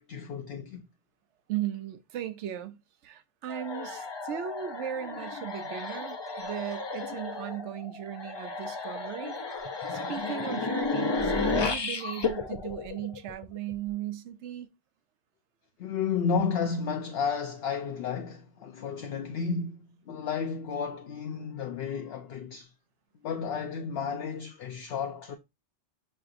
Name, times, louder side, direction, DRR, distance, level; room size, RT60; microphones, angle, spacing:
voice 1, 0.1-0.8 9.5-10.1 15.8-22.7 23.2-25.4, left 6 dB, 65° left, 0.7 m, -32 dB
voice 2, 1.5-9.4 9.6-14.7, right 11 dB, 90° right, 0.9 m, -37 dB
sound 1, 3.5-13.7, left 4 dB, 40° left, 0.3 m, -33 dB
5.6 x 3.3 x 2.4 m
omnidirectional pair, 1.2 m